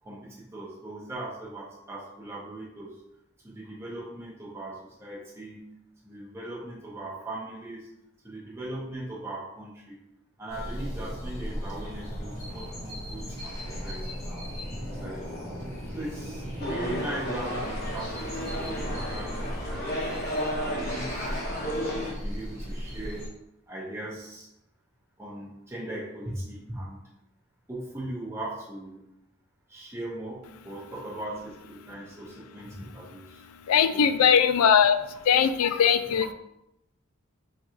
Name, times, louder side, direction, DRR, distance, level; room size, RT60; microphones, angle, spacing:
voice 1, 0.0-3.0 3.4-5.7 6.0-7.9 8.2-10.0 10.4-14.5 14.9-15.5 15.9-20.2 20.6-21.1 21.6-21.7 22.0-23.3 23.7-24.5 25.2-27.0 27.7-29.0 29.7-33.4 33.9-34.1 36.1-36.2, right 1 dB, 10° right, -6 dB, 0.7 m, -39 dB
sound 1, 10.5-23.3, equal, 15° left, 1.1 m, -37 dB
sound 2, 16.6-22.1, equal, 45° left, 0.7 m, -33 dB
voice 2, 33.5-35.0 35.2-36.3, left 7 dB, 80° left, 11 dB, 0.3 m, -20 dB
3.8 x 2.5 x 4.4 m, 0.83 s
head